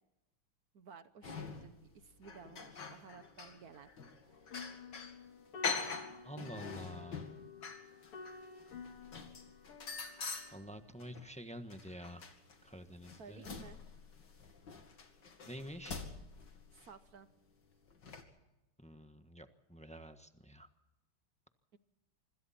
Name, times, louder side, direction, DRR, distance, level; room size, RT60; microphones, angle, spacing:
voice 1, 0.7-3.9 13.2-13.8 16.8-17.3 21.7-21.8, right 6 dB, 55° right, 11 dB, 1.2 m, -55 dB
sound 1, 1.2-1.9 2.2-5.2 5.6-11.3 11.7-16.9 17.9-18.2, left 5 dB, 55° left, 2.8 m, -45 dB
sound 2, 4.3-10.8, left 5 dB, 85° left, 2.9 m, -52 dB
voice 2, 6.2-7.3 10.5-12.2 12.6-13.4 15.5-16.0 18.8-20.7, equal, 5° left, 8 dB, 0.8 m, -48 dB
26.0 x 25.5 x 4.3 m, 0.96 s
omnidirectional pair, 2.4 m